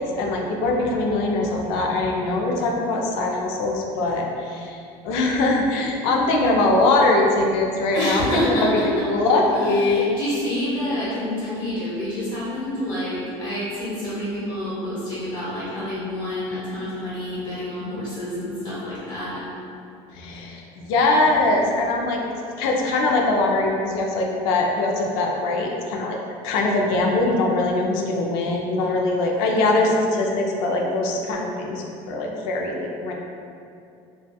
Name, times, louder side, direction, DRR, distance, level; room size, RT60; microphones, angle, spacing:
voice 1, 0.0-4.8 5.0-10.1 20.1-22.2 22.6-26.2 26.4-33.1, left 2 dB, 80° left, 0 dB, 0.4 m, -22 dB
voice 2, 7.9-9.0 9.5-19.4, left 1 dB, 35° left, -10 dB, 1.4 m, -28 dB
2.6 x 2.3 x 2.2 m, 2.6 s
cardioid pair, 130°, 13 cm